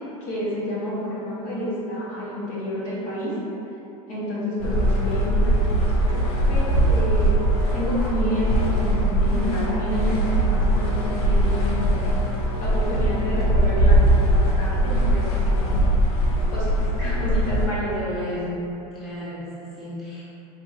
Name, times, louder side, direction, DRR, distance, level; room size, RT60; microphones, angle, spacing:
voice 1, 0.0-3.3 4.1-6.2 6.5-7.3 7.7-12.2 12.6-14.0 14.2-15.8 16.5-18.4, left 1 dB, 40° left, -8 dB, 1.1 m, -29 dB
sound 1, 4.6-17.6, right 1 dB, 65° left, 0.7 m, -21 dB
voice 2, 17.9-18.6 18.9-20.2, left 1 dB, ahead, -13 dB, 0.8 m, -35 dB
4.4 x 3.0 x 2.5 m, 3.0 s
supercardioid pair, 145°, 20 cm